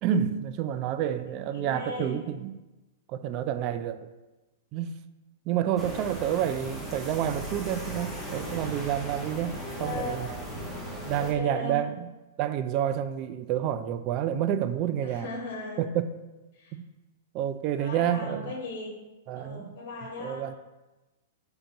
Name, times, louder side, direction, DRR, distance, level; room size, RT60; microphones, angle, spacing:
voice 1, 0.0-2.6 3.1-4.1 4.7-5.0 5.5-10.3 11.0-12.1 12.4-15.3 15.8-16.1 17.3-18.5 19.3-19.7 20.2-20.5, right 10 dB, 40° right, 11 dB, 0.3 m, -29 dB
voice 2, 1.5-2.2 6.2-6.3 9.8-10.2 10.5-10.6 11.1-11.8 15.0-15.8 16.5-16.7 17.8-18.9 19.3-20.5, left 2 dB, 65° left, 0 dB, 1.1 m, -37 dB
sound 1, 5.8-11.3, right 1 dB, 5° right, 0.9 m, -37 dB
3.8 x 3.4 x 4.0 m, 1.1 s
hypercardioid pair, 120°, 0 cm